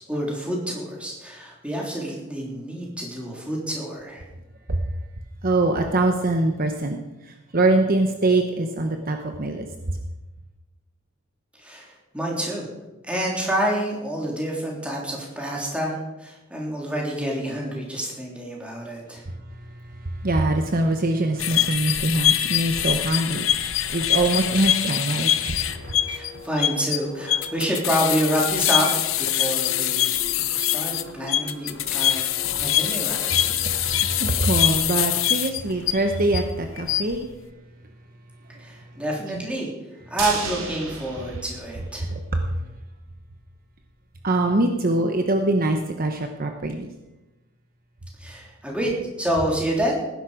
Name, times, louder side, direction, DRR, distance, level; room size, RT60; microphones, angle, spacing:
voice 1, 0.0-4.2 11.6-12.7 13.0-19.2 26.1-28.9 29.2-30.2 30.5-33.5 38.6-39.7 40.1-42.1 48.2-50.0, right 1 dB, 5° right, -2 dB, 3.4 m, -28 dB
voice 2, 5.4-7.0 7.2-10.0 19.5-26.0 33.6-37.3 39.3-39.5 42.1-42.5 44.2-46.9, right 2 dB, 45° right, 5 dB, 1.0 m, -24 dB
sound 1, 21.4-36.4 36.8-37.2, left 11 dB, 70° left, 0.8 m, -24 dB
sound 2, 25.5-34.3, left 1 dB, 70° right, 3.2 m, -42 dB
sound 3, 40.2-42.3 42.7-42.8 43.1-43.2, right 4 dB, 90° right, 2.9 m, -33 dB
18.5 x 10.5 x 5.1 m, 1.1 s
head